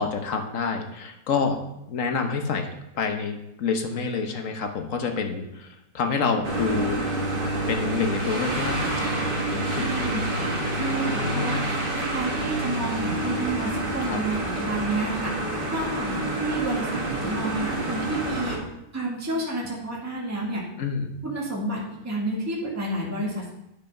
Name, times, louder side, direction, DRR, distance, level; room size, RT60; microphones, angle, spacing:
voice 1, 0.0-1.6 1.9-7.1 7.7-10.4 10.9-11.7 14.0-14.2 20.8-21.1, left 5 dB, 65° left, 5 dB, 1.4 m, -28 dB
sound 1, 6.4-18.6, right 2 dB, 40° right, 1.7 m, -28 dB
voice 2, 9.7-15.3 15.7-18.6 18.9-20.7 21.2-23.5, right 2 dB, 10° right, -4 dB, 1.8 m, -30 dB
9.9 x 5.6 x 5.4 m, 0.86 s
omnidirectional pair, 1.5 m